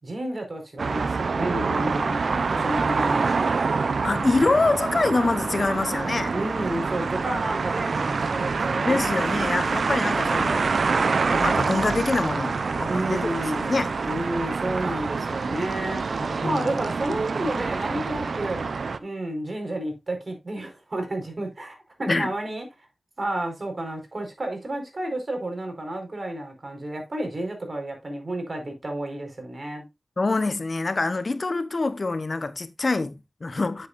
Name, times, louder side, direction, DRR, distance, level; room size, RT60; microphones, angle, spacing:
voice 1, 0.0-3.5 6.3-9.0 12.9-18.6 19.0-22.7 23.2-29.8, right 1 dB, 50° right, 4.7 m, -31 dB
sound 1, 0.8-19.0, right 4 dB, 80° right, 0.6 m, -26 dB
voice 2, 4.0-6.3 8.9-10.7 11.2-13.3 13.6-13.9 14.8-14.9 16.4-16.7 22.1-22.3 30.2-33.9, left 3 dB, 55° left, 1.0 m, -25 dB
10.0 x 7.9 x 2.6 m
cardioid pair, 45°, 0 cm